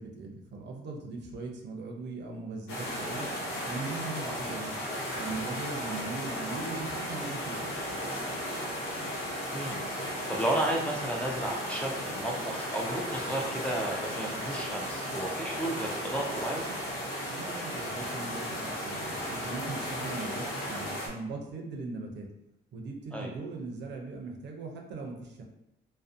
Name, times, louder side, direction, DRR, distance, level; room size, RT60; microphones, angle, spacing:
voice 1, 0.0-3.3 3.7-4.7 5.1-7.9 17.3-22.3 22.7-25.4, right 3 dB, 60° right, 1 dB, 0.5 m, -40 dB
sound 1, 2.7-21.1, equal, 85° left, 0.7 m, -35 dB
voice 2, 9.5-9.8 10.3-16.7 23.1-23.3, right 1 dB, 5° left, -2 dB, 0.4 m, -33 dB
2.5 x 2.0 x 2.5 m, 0.83 s
cardioid pair, 90°, 20 cm